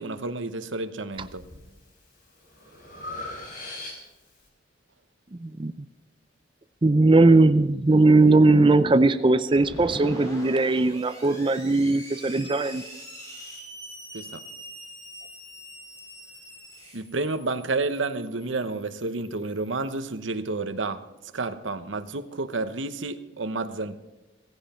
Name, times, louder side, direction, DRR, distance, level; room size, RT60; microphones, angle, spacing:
voice 1, 0.0-1.4 14.1-14.4 16.9-21.1 21.3-24.0, right 3 dB, 90° right, 1.0 m, -30 dB
Breathing, 1.1-1.6 2.1-4.3, left 2 dB, 50° left, 4.7 m, -39 dB
voice 2, 5.4-5.7 6.8-12.8, right 2 dB, 25° right, 0.5 m, -19 dB
Screech, 9.6-20.0, equal, 20° left, 5.3 m, -43 dB
16.0 x 15.5 x 4.4 m
head